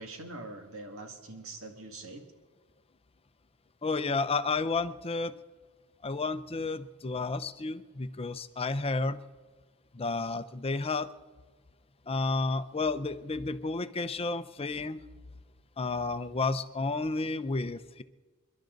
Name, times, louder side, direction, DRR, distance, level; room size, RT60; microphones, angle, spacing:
voice 1, 0.0-2.2, right 2 dB, 65° right, 4 dB, 2.1 m, -43 dB
voice 2, 3.8-5.3 6.0-9.2 9.9-11.1 12.1-15.0 15.8-18.0, left 3 dB, 25° left, 12 dB, 0.6 m, -31 dB
29.0 x 11.5 x 4.0 m, 1.4 s
head